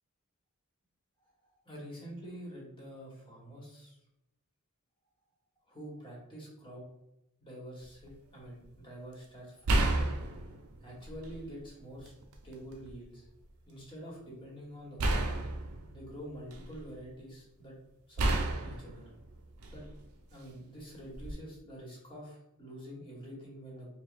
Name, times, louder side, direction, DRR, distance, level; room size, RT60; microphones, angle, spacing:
voice 1, 1.2-4.0 5.7-6.8 7.4-10.1 10.8-12.1 12.4-13.3 13.6-15.3 15.9-17.7 18.1-19.0 19.7-19.8 20.3-23.9, equal, 25° left, -5 dB, 1.2 m, -47 dB
sound 1, 7.8-8.1 9.6-11.5 12.0-12.9 15.0-16.9 18.2-20.0 21.1-21.3, right 2 dB, 75° right, 0.4 m, -32 dB
5.0 x 2.3 x 2.5 m, 0.87 s
head